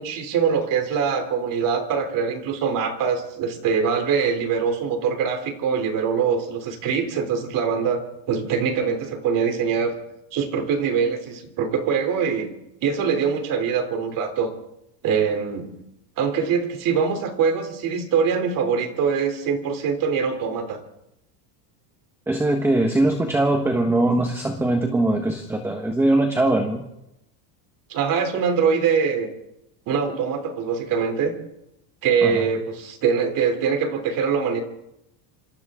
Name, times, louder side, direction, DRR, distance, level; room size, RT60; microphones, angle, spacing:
voice 1, 0.0-9.9 10.3-12.5 12.8-14.5 15.0-15.7 16.2-20.8 27.9-29.3 29.9-31.3 32.0-34.6, right 6 dB, 40° right, 7 dB, 3.4 m, -23 dB
voice 2, 22.3-26.8 32.2-32.4, right 2 dB, 5° right, 4 dB, 1.3 m, -21 dB
27.0 x 26.0 x 3.7 m, 0.84 s
cardioid pair, 170°, 50 cm